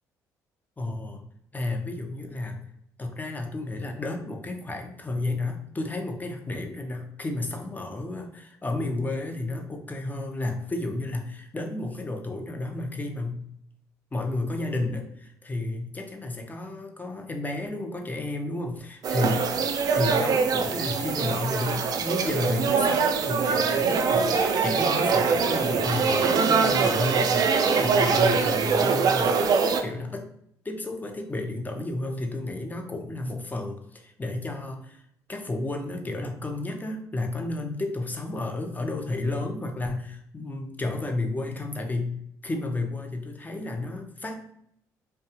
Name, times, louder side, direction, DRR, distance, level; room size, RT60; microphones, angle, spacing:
voice 1, 0.8-1.2 1.5-2.7 3.0-13.4 14.1-19.5 19.9-29.4 29.7-30.3 30.6-35.0 35.3-44.4, left 2 dB, 20° left, 3 dB, 0.6 m, -32 dB
sound 1, 19.0-29.8, right 5 dB, 50° right, 0.4 m, -23 dB
2.7 x 2.2 x 2.7 m, 0.71 s
supercardioid pair, 65°, 8 cm